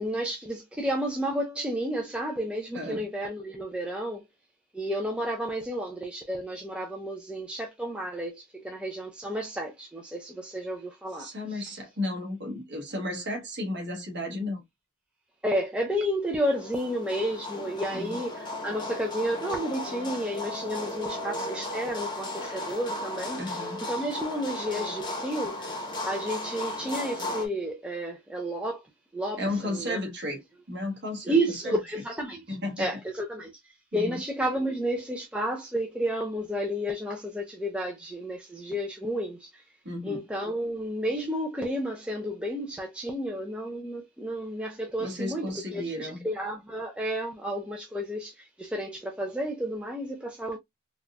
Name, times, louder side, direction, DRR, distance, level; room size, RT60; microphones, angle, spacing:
voice 1, 0.0-4.2 4.7-11.8 15.4-28.8 29.1-30.0 31.3-33.5 33.9-39.6 40.0-50.6, equal, 5° right, 0.4 m, -31 dB
voice 2, 11.2-14.6 17.9-18.1 23.3-23.8 29.4-30.4 30.7-31.8 32.5-32.9 33.9-34.2 39.8-40.2 45.0-46.2, left 1 dB, 50° right, 1.2 m, -33 dB
sound 1, 16.4-27.5, left 1 dB, 20° left, 0.8 m, -35 dB
4.0 x 2.3 x 2.2 m
head